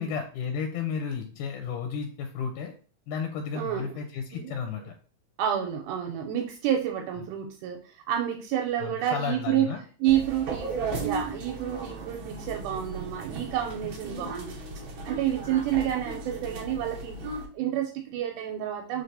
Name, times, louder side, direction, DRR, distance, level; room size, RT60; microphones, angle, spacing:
voice 1, 0.0-2.7 3.1-4.9 7.2-7.3 8.8-9.8, left 6 dB, 90° left, 3 dB, 2.1 m, -33 dB
voice 2, 3.6-3.9 4.3-4.5 5.4-9.7 10.0-14.6 15.0-17.2 17.5-19.0, right 11 dB, 85° right, 3 dB, 2.0 m, -29 dB
sound 1, 10.0-17.5, right 3 dB, 65° right, 1.3 m, -36 dB
4.7 x 3.2 x 2.6 m, 0.40 s
omnidirectional pair, 3.6 m